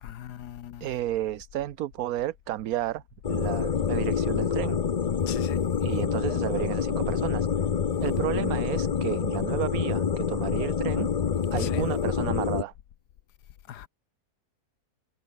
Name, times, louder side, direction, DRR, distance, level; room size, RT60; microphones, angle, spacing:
voice 1, 0.0-0.9 5.3-5.6 11.6-11.9 13.7-13.9, left 11 dB, 90° left, 1.5 m, -39 dB
voice 2, 0.8-3.0 3.3-4.8 5.8-7.5 8.0-11.1 11.5-12.7, right 13 dB, 70° right, 1.1 m, -32 dB
sound 1, 3.2-12.6, left 7 dB, 65° left, 0.3 m, -27 dB
omnidirectional pair, 1.7 m